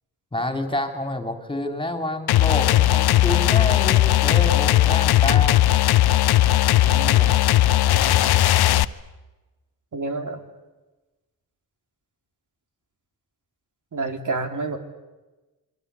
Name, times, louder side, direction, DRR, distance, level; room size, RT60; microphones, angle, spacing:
voice 1, 0.3-5.7 7.0-7.4, left 1 dB, 15° left, 6 dB, 3.6 m, -28 dB
sound 1, 2.3-8.8, left 13 dB, 80° left, 0.9 m, -17 dB
voice 2, 6.7-7.3 9.9-10.4 13.9-14.8, right 3 dB, 55° right, 6 dB, 3.6 m, -29 dB
27.5 x 23.5 x 8.5 m, 1.1 s
cardioid pair, 80°, 37 cm